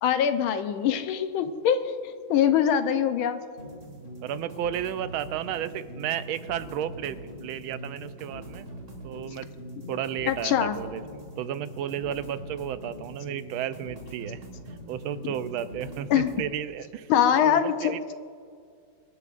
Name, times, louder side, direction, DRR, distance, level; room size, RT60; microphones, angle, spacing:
voice 1, 0.0-3.4 10.3-10.8 15.2-15.3 16.1-16.3 17.1-18.0, left 9 dB, 90° left, 9 dB, 1.6 m, -23 dB
sound 1, 3.6-16.5, equal, 40° right, 2.1 m, -42 dB
voice 2, 4.2-8.7 9.0-9.5 9.9-14.4 14.9-17.1 17.3-18.1, right 10 dB, 90° right, 13 dB, 1.4 m, -33 dB
24.5 x 11.0 x 2.5 m, 2.2 s
omnidirectional pair, 2.2 m